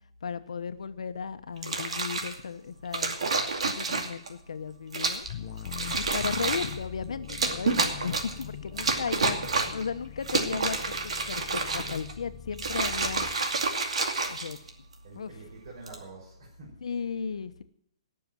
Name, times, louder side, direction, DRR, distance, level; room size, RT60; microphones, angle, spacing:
voice 1, 0.2-3.2 3.6-5.3 6.0-9.4 9.7-10.8 11.0-13.3 14.3-14.6 15.1-15.4 16.8-17.6, left 6 dB, 85° left, 10 dB, 1.1 m, -35 dB
sound 1, 1.6-2.4 2.9-4.3 4.9-5.3 5.6-6.8 7.3-8.4 8.8-9.8 10.2-12.1 12.5-14.9 15.7-16.0, right 4 dB, 85° right, 2.4 m, -29 dB
sound 2, 5.2-13.4, left 10 dB, 35° left, 0.9 m, -42 dB
voice 2, 8.7-9.3 15.0-16.8, right 2 dB, 40° right, -3 dB, 5.3 m, -47 dB
18.5 x 6.9 x 7.5 m, 0.69 s
hypercardioid pair, 175°, 3 cm